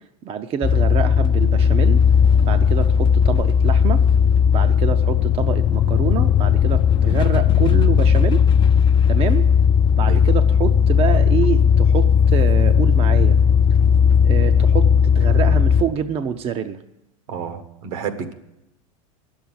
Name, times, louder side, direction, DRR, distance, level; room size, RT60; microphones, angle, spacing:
voice 1, 0.2-2.0 2.5-4.0 4.5-8.5 9.1-9.5 9.9-13.4 14.2-16.8, right 8 dB, 35° right, 8 dB, 0.6 m, -26 dB
sound 1, 0.6-15.8, left 7 dB, 25° left, 0.5 m, -16 dB
voice 2, 17.3-18.3, right 7 dB, 75° right, 9 dB, 1.4 m, -30 dB
10.0 x 7.2 x 9.3 m, 0.90 s
hypercardioid pair, 105°, 18 cm